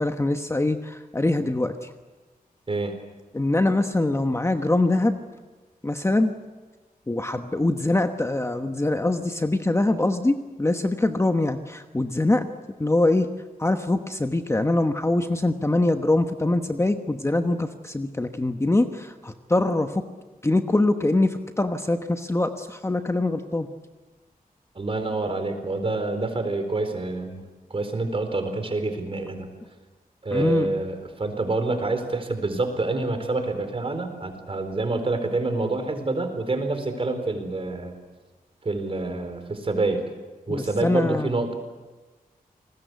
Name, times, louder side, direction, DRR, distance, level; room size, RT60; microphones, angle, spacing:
voice 1, 0.0-1.9 3.3-5.2 5.8-6.3 7.1-12.5 12.8-13.3 13.6-19.9 20.4-23.7 30.3-30.7 40.5-41.3, left 2 dB, 20° left, 7 dB, 1.1 m, -23 dB
voice 2, 24.7-29.5 30.2-37.9 38.6-40.0 40.5-41.5, right 2 dB, 40° right, 7 dB, 4.2 m, -27 dB
29.5 x 20.5 x 8.2 m, 1.3 s
wide cardioid pair, 130°, 15 cm